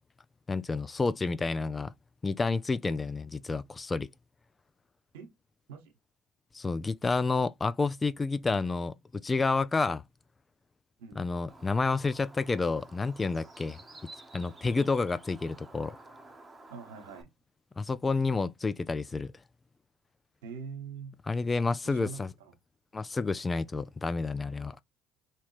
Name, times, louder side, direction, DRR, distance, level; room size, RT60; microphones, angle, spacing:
voice 1, 0.5-1.9 2.2-4.1 6.5-10.0 11.2-13.8 14.3-16.0 17.8-19.3 21.3-22.3 22.9-24.8, left 3 dB, 25° left, 0.4 m, -29 dB
Bird, 11.5-17.2, right 2 dB, 20° right, 1.0 m, -52 dB
voice 2, 16.7-17.3 20.4-21.1 21.8-22.6, right 5 dB, 80° right, 1.0 m, -43 dB
3.0 x 2.8 x 3.1 m
hypercardioid pair, 65°, 0 cm